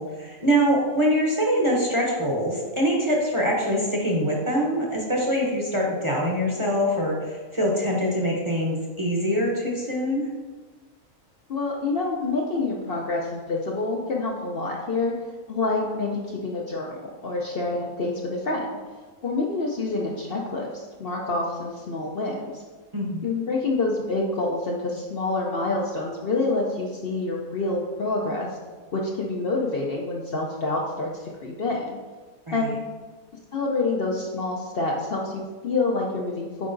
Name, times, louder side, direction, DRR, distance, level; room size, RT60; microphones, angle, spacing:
voice 1, 0.0-10.3 22.9-23.2 32.5-32.8, equal, 25° right, -3 dB, 0.9 m, -24 dB
voice 2, 11.5-15.1 15.5-18.8 19.2-22.5 23.2-28.5 28.9-32.0 32.5-32.8 33.5-36.7, left 3 dB, 55° left, -2 dB, 0.8 m, -27 dB
8.4 x 4.7 x 2.6 m, 1.3 s
omnidirectional pair, 1.4 m